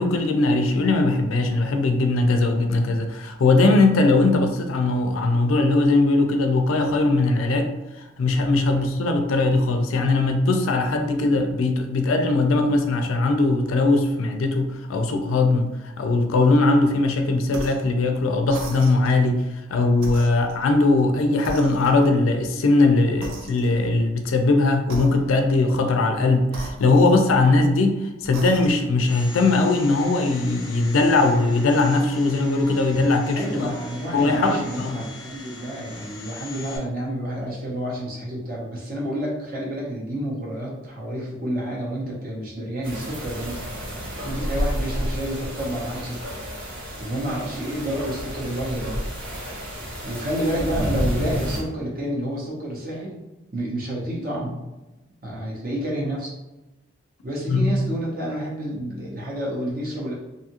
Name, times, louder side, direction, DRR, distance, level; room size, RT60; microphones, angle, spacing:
voice 1, 0.0-7.7 8.2-19.4 19.7-33.7 34.1-35.0 57.5-57.7, left 2 dB, 85° left, 5 dB, 0.4 m, -20 dB
sound 1, 17.5-17.9 18.5-19.2 20.0-21.1 21.5-22.2 23.2-24.0 24.8-25.6 26.5-27.6 28.2-28.9, right 1 dB, 90° right, 0.5 m, -38 dB
Domestic sounds home sounds, 29.1-36.8, left 3 dB, 20° left, 0.4 m, -41 dB
voice 2, 33.3-43.6 44.2-46.2 47.0-49.0 50.0-53.2 53.5-54.6 55.2-56.3 57.2-60.1, right 1 dB, 45° right, -4 dB, 0.8 m, -29 dB
sound 2, 42.8-51.6, equal, 70° right, 1.1 m, -30 dB
2.6 x 2.4 x 2.8 m, 1.0 s
head